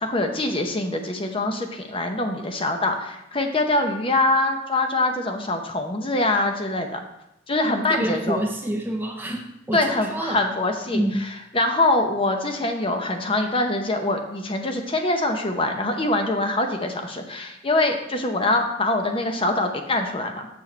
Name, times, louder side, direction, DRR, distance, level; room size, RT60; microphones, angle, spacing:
voice 1, 0.0-7.0 7.5-8.4 9.7-11.0 11.5-20.5, left 2 dB, 25° left, 4 dB, 0.8 m, -24 dB
voice 2, 7.9-10.4 10.9-11.2, right 1 dB, 10° right, 2 dB, 0.5 m, -27 dB
7.4 x 6.2 x 4.4 m, 0.89 s
head